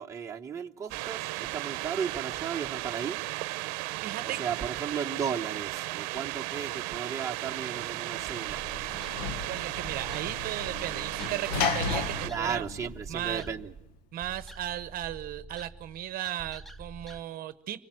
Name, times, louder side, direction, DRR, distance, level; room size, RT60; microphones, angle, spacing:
voice 1, 0.0-3.2 4.4-8.6 12.2-13.7, right 7 dB, 15° right, 1 dB, 1.0 m, -35 dB
sound 1, 0.9-12.3, right 20 dB, 75° right, 0.8 m, -35 dB
voice 2, 4.0-4.4 9.4-12.6 13.1-13.5 14.1-17.8, right 12 dB, 45° right, 13 dB, 0.9 m, -36 dB
Sliding door / Slam, 7.8-13.7, left 5 dB, 90° left, 1.4 m, -35 dB
sound 2, 8.5-17.2, right 2 dB, ahead, 0.8 m, -48 dB
26.0 x 18.5 x 7.6 m, 0.88 s
cardioid pair, 130°, 20 cm